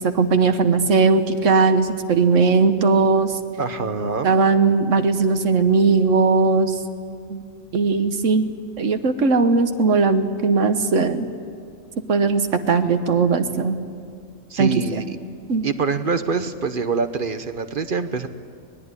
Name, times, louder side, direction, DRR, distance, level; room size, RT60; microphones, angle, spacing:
voice 1, 0.0-3.4 4.2-6.8 7.3-7.4 7.7-8.5 8.8-11.3 12.1-13.8 14.6-14.7 15.5-15.6, right 4 dB, 75° right, 8 dB, 1.5 m, -18 dB
voice 2, 3.6-4.3 14.5-15.2 15.6-18.3, right 5 dB, 45° right, 10 dB, 1.0 m, -25 dB
24.5 x 19.5 x 9.7 m, 2.3 s
omnidirectional pair, 1.3 m